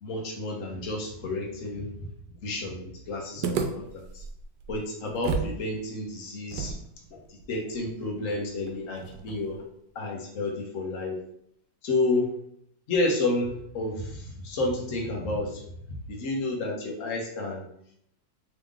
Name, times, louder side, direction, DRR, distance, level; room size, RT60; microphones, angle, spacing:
voice 1, 0.0-1.9 2.4-4.2 4.7-6.7 7.1-9.6 9.9-11.2 11.8-12.3 12.9-15.6 16.1-17.7, left 2 dB, 50° left, 0 dB, 1.2 m, -30 dB
sound 1, 3.4-5.6 5.8-5.9 6.5-9.6, right 5 dB, 80° right, 1.3 m, -34 dB
3.7 x 3.5 x 3.5 m, 0.70 s
omnidirectional pair, 2.0 m